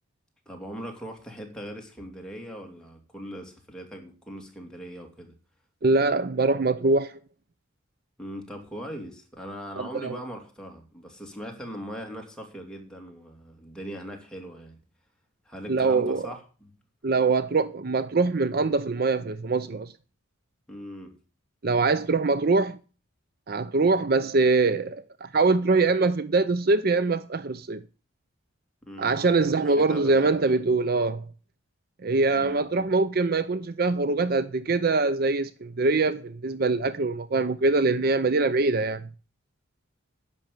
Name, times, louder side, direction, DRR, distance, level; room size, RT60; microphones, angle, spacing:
voice 1, 0.5-5.3 8.2-14.8 15.4-16.7 20.7-21.1 28.8-30.3 32.3-32.8, equal, 5° left, 2.9 m, -40 dB
voice 2, 5.8-7.2 9.8-10.1 15.7-16.3 17.0-19.9 21.6-22.8 23.5-27.8 29.0-31.3 32.0-39.1, right 3 dB, 50° right, 0.6 m, -23 dB
10.5 x 7.0 x 8.8 m
head